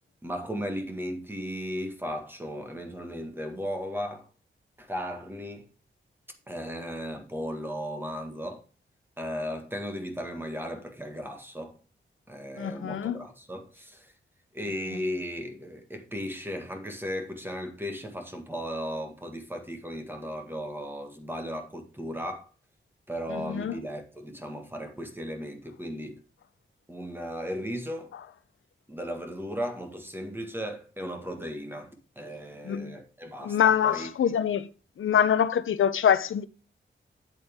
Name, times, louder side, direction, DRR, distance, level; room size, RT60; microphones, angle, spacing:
voice 1, 0.2-4.3 4.8-5.7 6.5-8.6 9.2-11.7 12.3-14.1 14.5-22.5 23.1-26.2 26.9-28.1 28.9-34.4, equal, 10° right, 1.7 m, -36 dB
voice 2, 12.6-13.1 23.3-23.8 32.7-32.9 33.4-34.7 35.0-36.5, left 8 dB, 80° left, 0.7 m, -24 dB
8.5 x 8.1 x 3.6 m
wide cardioid pair, 140°, 20 cm